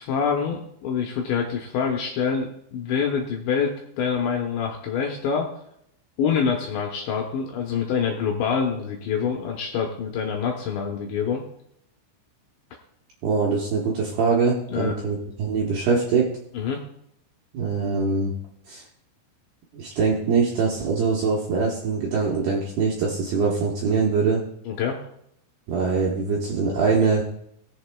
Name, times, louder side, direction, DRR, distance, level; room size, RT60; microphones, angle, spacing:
voice 1, 0.0-5.5 6.2-11.4 14.7-14.9 16.5-16.8 24.7-25.0, left 6 dB, 75° left, 1 dB, 2.7 m, -26 dB
voice 2, 13.2-16.3 17.5-18.3 18.7-18.8 19.7-24.4 25.7-27.2, right 4 dB, 70° right, -2 dB, 2.5 m, -23 dB
20.5 x 7.2 x 2.3 m, 0.73 s
omnidirectional pair, 6.0 m